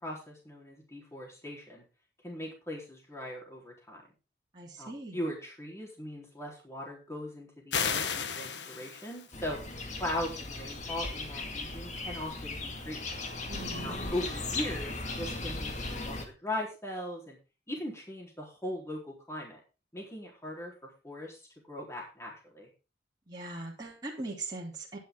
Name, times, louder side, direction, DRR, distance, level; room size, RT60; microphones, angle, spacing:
voice 1, 0.0-1.8 2.2-4.0 4.8-9.6 10.0-13.0 13.8-17.4 17.7-19.6 19.9-21.4 21.7-22.7, left 1 dB, 15° left, -2 dB, 4.0 m, -39 dB
voice 2, 4.5-5.2 13.5-14.0 23.3-25.0, right 2 dB, 25° right, -5 dB, 3.3 m, -40 dB
sound 1, 7.7-9.3, left 6 dB, 80° left, 1.3 m, -33 dB
sound 2, 9.3-16.3, left 2 dB, 40° left, 2.2 m, -37 dB
11.5 x 10.5 x 3.8 m, 0.31 s
head